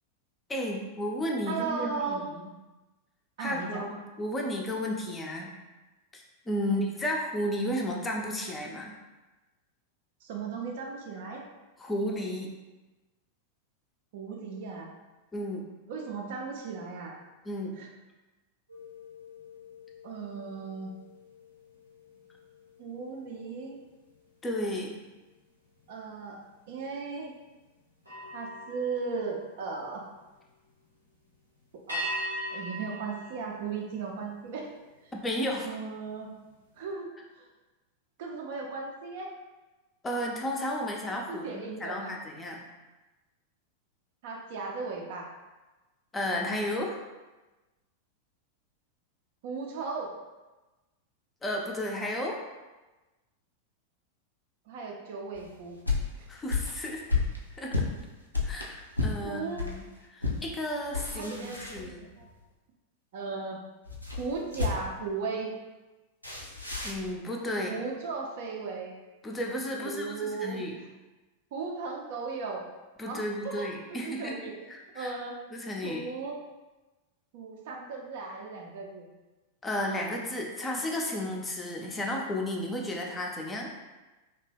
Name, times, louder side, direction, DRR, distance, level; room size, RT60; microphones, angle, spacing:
voice 1, 0.5-2.4 3.4-5.5 6.1-8.9 11.8-12.5 15.3-15.6 17.5-17.8 24.4-25.0 35.1-35.8 40.0-42.6 46.1-47.0 51.4-52.4 56.3-57.0 57.6-57.7 58.4-59.8 60.1-62.1 66.8-67.8 69.2-70.7 73.0-74.3 74.7-75.1 75.5-76.1 79.6-83.7, left 1 dB, 15° left, -1 dB, 0.4 m, -33 dB
voice 2, 1.5-2.2 3.4-3.9 6.6-6.9 10.2-11.4 14.1-14.9 15.9-17.2 17.7-17.9 20.0-20.9 22.8-23.8 25.9-26.4 26.7-27.3 28.3-30.1 31.9-32.1 32.5-34.7 35.0-35.1 35.6-36.3 36.8-37.1 37.3-37.5 38.2-39.3 41.3-42.1 44.2-45.3 49.4-50.1 54.7-55.8 56.2-56.3 59.2-59.6 61.1-62.3 63.1-63.6 64.2-65.6 67.7-68.9 69.8-70.6 71.5-72.7 73.1-74.6 74.9-75.4 75.8-76.4 77.3-79.1, right 4 dB, 55° right, 0 dB, 0.4 m, -36 dB
sound 1, 18.7-24.3 24.7-25.0 28.0-30.2 31.9-34.5, equal, 90° right, 0.8 m, -42 dB
sound 2, 55.3-59.8 60.2-60.5 60.8-62.3 63.8-65.0 66.2-67.1, left 4 dB, 85° left, 0.4 m, -32 dB
2.7 x 2.1 x 3.3 m, 1.1 s
figure-of-eight pair, 90°, 0 cm